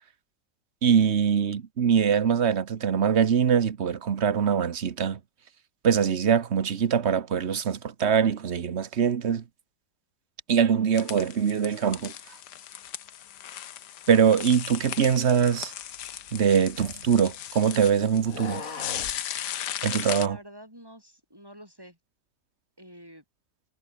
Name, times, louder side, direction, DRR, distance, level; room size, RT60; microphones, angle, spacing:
voice 1, 0.8-5.2 5.8-9.4 10.5-12.1 14.1-15.7 16.3-18.6 19.8-20.4, right 7 dB, 45° right, 1.2 m, -23 dB
sound 1, 10.9-20.3, left 11 dB, 80° left, 1.6 m, -37 dB
sound 2, 15.9-17.4 18.2-19.2, left 4 dB, 55° left, 2.8 m, -40 dB
voice 2, 20.2-22.0 22.8-23.2, equal, 15° right, 7.0 m, -48 dB
omnidirectional pair, 1.8 m